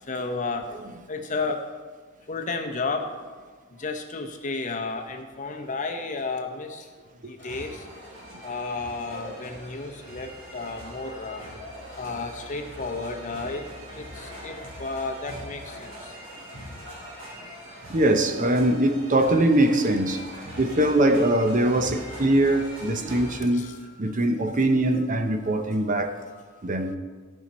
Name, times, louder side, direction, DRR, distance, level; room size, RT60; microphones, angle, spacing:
voice 1, 0.1-0.7 1.1-1.6 2.3-3.1 3.8-6.8 7.3-7.8 8.4-11.4 12.0-13.6 14.0-16.1 23.3-23.9, left 3 dB, 40° left, 0.9 m, -32 dB
sound 1, 7.4-23.4, equal, 80° right, 3.1 m, -42 dB
voice 2, 17.9-26.2 26.6-27.0, right 1 dB, 40° right, 0.7 m, -22 dB
16.0 x 5.7 x 4.2 m
head